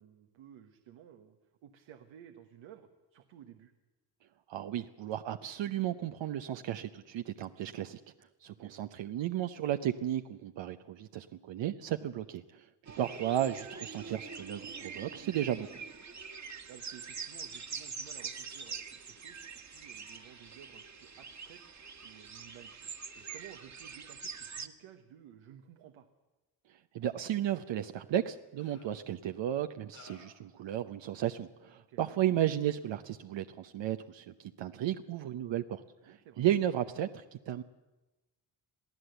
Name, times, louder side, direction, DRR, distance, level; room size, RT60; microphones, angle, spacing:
voice 1, 0.0-3.7 8.5-8.9 12.9-13.1 16.4-22.8 23.2-26.1 31.8-32.0 36.1-36.4, right 9 dB, 85° right, 6 dB, 1.3 m, -55 dB
voice 2, 4.5-8.0 8.4-12.7 13.0-15.8 26.7-37.6, right 11 dB, 70° right, 8 dB, 0.8 m, -34 dB
sound 1, 12.9-24.7, right 5 dB, 35° right, 1.6 m, -44 dB
sound 2, 27.6-27.7 28.6-29.0 29.9-30.5, left 5 dB, 90° left, 3.2 m, -56 dB
23.0 x 14.0 x 8.0 m, 1.1 s
supercardioid pair, 60°, 46 cm